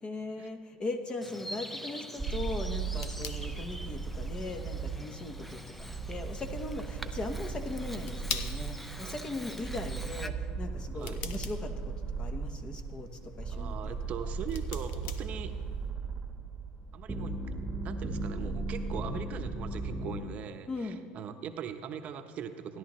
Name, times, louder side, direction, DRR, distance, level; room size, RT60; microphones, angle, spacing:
voice 1, 0.0-14.0 20.7-21.0, left 2 dB, 30° left, 6 dB, 1.1 m, -39 dB
Bird vocalization bird call bird song, 1.2-10.3, equal, 5° left, 0.5 m, -45 dB
sound 1, 2.2-20.3, right 4 dB, 15° right, 1.2 m, -37 dB
sound 2, 2.4-15.9, left 8 dB, 65° left, 0.8 m, -46 dB
voice 2, 13.5-15.5 16.9-17.4 17.8-22.8, right 8 dB, 50° right, 7 dB, 0.8 m, -41 dB
16.0 x 11.0 x 3.1 m, 2.1 s
supercardioid pair, 100°, 3 cm